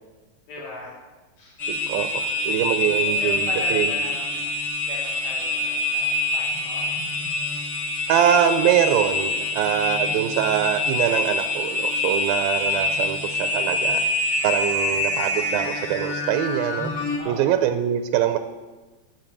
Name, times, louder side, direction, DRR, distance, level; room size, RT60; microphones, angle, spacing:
voice 1, 0.5-0.9 1.4-1.6 3.1-4.5 4.9-6.9 13.1-13.3 14.9-15.0 17.2-17.6, left 2 dB, 80° left, -5 dB, 5.3 m, -38 dB
sound 1, 1.6-17.2, left 2 dB, 35° left, 1.6 m, -25 dB
voice 2, 1.7-2.1 2.4-3.9 8.1-14.0 14.4-16.9 17.3-18.4, right 10 dB, 85° right, 8 dB, 2.4 m, -23 dB
11.0 x 7.5 x 7.1 m, 1.2 s
omnidirectional pair, 4.1 m